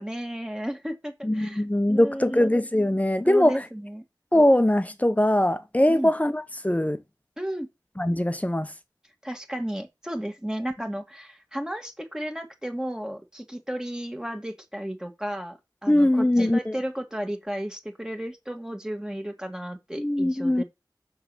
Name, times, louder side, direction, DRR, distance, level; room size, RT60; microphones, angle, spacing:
voice 1, 0.0-1.6 1.9-2.5 3.2-4.0 5.9-6.1 7.4-7.7 9.2-15.6 15.8-20.6, equal, 10° right, 2.2 m, -33 dB
voice 2, 1.2-3.6 4.3-7.0 8.0-8.7 15.9-16.7 20.0-20.6, left 1 dB, 20° left, 1.2 m, -21 dB
7.0 x 6.1 x 6.3 m
wide cardioid pair, 55°, 8 cm